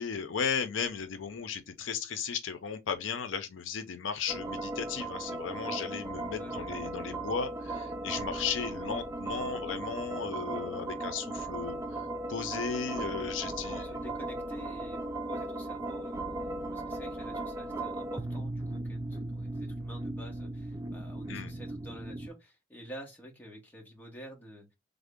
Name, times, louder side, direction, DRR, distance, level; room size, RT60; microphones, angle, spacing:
voice 1, 0.0-13.9 21.3-21.5, left 6 dB, 85° left, 0.5 m, -35 dB
sound 1, 4.3-22.3, right 2 dB, 15° right, 0.4 m, -37 dB
voice 2, 6.3-6.7 13.6-16.2 16.7-24.7, equal, 10° left, 1.1 m, -48 dB
3.5 x 2.1 x 3.5 m
head